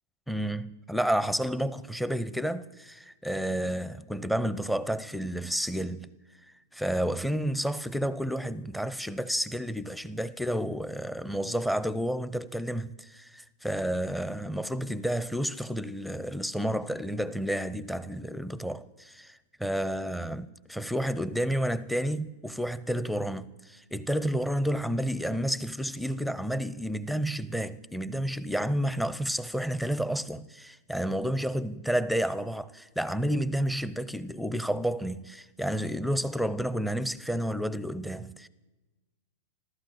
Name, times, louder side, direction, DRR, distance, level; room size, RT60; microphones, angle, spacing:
voice 1, 0.3-6.1 6.7-38.5, equal, ahead, 0.6 m, -30 dB
14.5 x 13.0 x 7.2 m
hypercardioid pair, 105°, 0 cm